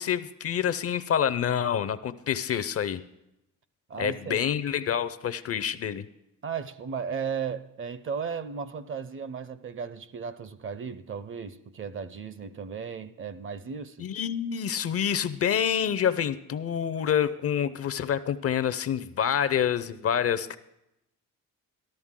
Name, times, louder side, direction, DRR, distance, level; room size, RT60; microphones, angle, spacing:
voice 1, 0.0-3.0 4.0-6.1 14.0-20.6, left 8 dB, 45° left, 0.5 m, -27 dB
voice 2, 3.9-4.4 6.4-14.1, right 6 dB, 40° right, 0.6 m, -35 dB
13.0 x 13.0 x 3.6 m
cardioid pair, 105°, 33 cm